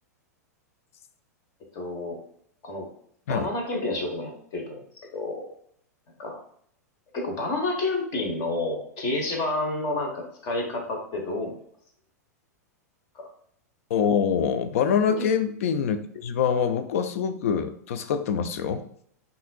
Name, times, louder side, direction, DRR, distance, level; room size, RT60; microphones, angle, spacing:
voice 1, 1.7-2.2 2.6-2.9 3.3-4.8 5.1-5.5 6.2-6.4 7.1-11.5 13.1-13.3, left 2 dB, 40° left, 1 dB, 1.1 m, -29 dB
voice 2, 13.9-18.8, left 7 dB, 55° left, 10 dB, 0.4 m, -25 dB
5.5 x 2.7 x 2.3 m, 0.65 s
figure-of-eight pair, 95°, 9 cm